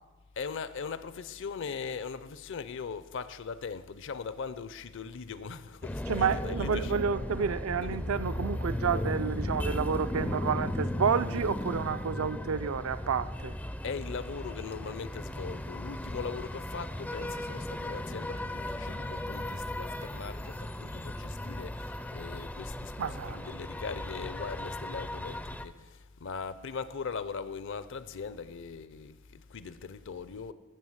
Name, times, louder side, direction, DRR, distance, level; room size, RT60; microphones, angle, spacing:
voice 1, 0.4-6.9 7.8-8.1 13.8-30.5, left 5 dB, 55° left, 0.6 m, -40 dB
sound 1, 5.8-25.7, left 1 dB, 5° left, 0.4 m, -36 dB
voice 2, 6.1-13.6 23.0-23.6, right 6 dB, 65° right, 0.4 m, -30 dB
13.0 x 6.9 x 7.9 m
head